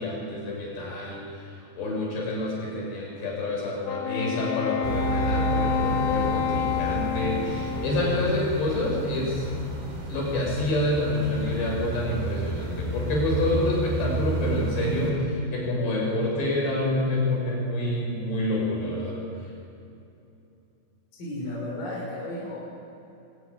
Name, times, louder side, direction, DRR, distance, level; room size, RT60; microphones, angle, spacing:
voice 1, 0.0-9.5 10.1-19.2, left 1 dB, 60° left, -3 dB, 7.8 m, -27 dB
Wind instrument woodwind instrument, 3.8-8.4, left 8 dB, 80° left, 2.9 m, -29 dB
sound 1, 4.8-15.1, right 2 dB, 55° right, 4.9 m, -31 dB
voice 2, 21.2-22.6, left 1 dB, 45° left, -5 dB, 6.6 m, -33 dB
23.5 x 14.0 x 9.8 m, 2.9 s
omnidirectional pair, 5.5 m